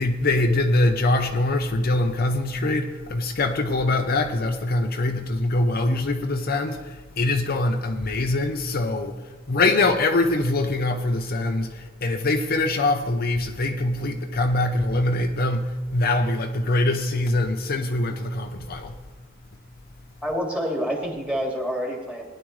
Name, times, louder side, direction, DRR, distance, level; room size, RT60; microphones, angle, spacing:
voice 1, 0.0-9.1 9.5-19.0, left 2 dB, 50° left, 0.7 m, -23 dB
voice 2, 20.2-22.2, equal, 5° right, 2.2 m, -27 dB
19.0 x 10.5 x 3.2 m
head